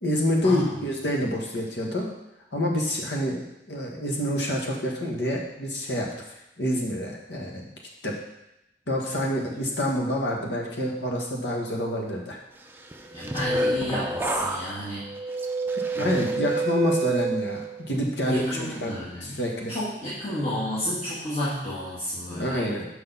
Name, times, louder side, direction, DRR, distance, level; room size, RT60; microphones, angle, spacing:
voice 1, 0.0-2.1 2.5-3.4 3.7-6.1 6.6-7.7 8.0-8.1 8.9-12.4 15.9-18.9 19.2-19.8 22.3-22.9, left 1 dB, 80° left, -1 dB, 1.6 m, -27 dB
sound 1, 12.9-17.9 18.4-18.8, right 3 dB, 10° right, 0.5 m, -29 dB
voice 2, 13.1-15.0 15.9-16.2 18.2-19.3 19.7-22.7, equal, 35° left, -10 dB, 2.0 m, -31 dB
6.2 x 5.4 x 5.6 m, 0.89 s
head